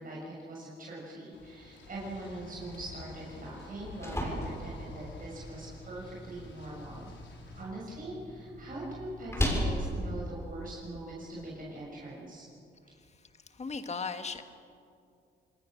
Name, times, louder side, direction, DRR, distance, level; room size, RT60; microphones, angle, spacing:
voice 1, 0.0-7.1 7.5-12.4, right 1 dB, 45° right, -4 dB, 6.8 m, -42 dB
sound 1, 1.3-7.6, left 3 dB, 65° left, 4.5 m, -50 dB
sound 2, 3.6-11.5, equal, 15° left, 6.8 m, -37 dB
voice 2, 12.9-14.4, left 4 dB, 35° left, 8 dB, 1.7 m, -38 dB
27.5 x 20.0 x 6.5 m, 2.5 s
cardioid pair, 90°, 20 cm